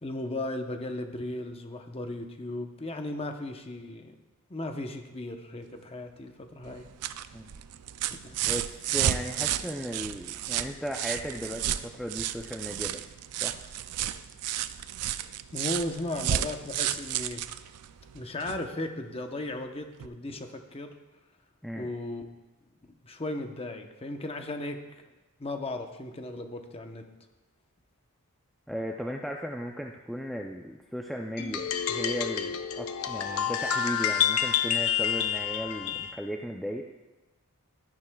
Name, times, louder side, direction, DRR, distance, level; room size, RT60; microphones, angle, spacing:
voice 1, 0.0-4.1 4.5-6.9 8.1-8.4 15.5-17.5 18.1-21.0 21.7-22.3 23.0-25.1 25.4-27.1, left 2 dB, 25° left, 5 dB, 0.8 m, -36 dB
sound 1, 6.6-18.7 20.0-20.1, right 11 dB, 90° right, 0.4 m, -32 dB
voice 2, 8.4-13.0 13.4-13.6 21.6-21.9 28.7-36.8, equal, ahead, 1 dB, 0.4 m, -36 dB
sound 2, 31.4-36.1, left 8 dB, 75° left, 0.6 m, -28 dB
13.5 x 11.0 x 2.3 m, 1.1 s
head